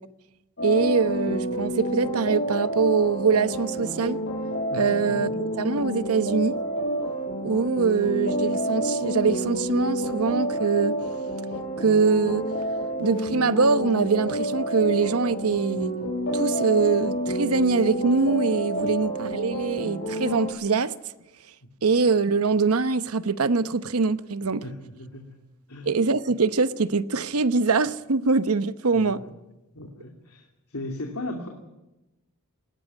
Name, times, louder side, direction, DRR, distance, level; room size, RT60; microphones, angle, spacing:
sound 1, 0.6-20.5, right 1 dB, 55° left, 6.7 m, -29 dB
voice 1, 0.6-4.2 4.7-5.3 5.6-6.6 7.4-11.0 11.8-12.4 13.0-15.9 16.3-20.9 21.8-24.6 25.9-29.2, right 4 dB, 75° right, 0.9 m, -23 dB
voice 2, 4.7-5.3 18.8-18.9 21.6-21.9 24.6-25.3 25.7-25.9 28.9-29.3 29.7-31.5, left 1 dB, 85° left, 2.8 m, -37 dB
20.0 x 18.0 x 9.4 m
head